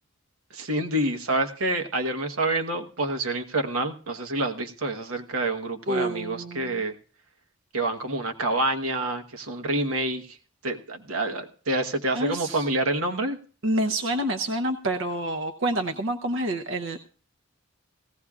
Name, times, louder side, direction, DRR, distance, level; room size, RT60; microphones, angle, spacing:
voice 1, 0.5-7.0 7.7-10.4 10.6-13.4, right 2 dB, 85° right, 6 dB, 1.2 m, -27 dB
voice 2, 5.9-6.8 12.1-12.7 13.6-17.0, right 1 dB, 60° right, 5 dB, 0.7 m, -28 dB
17.5 x 15.5 x 2.4 m, 0.42 s
head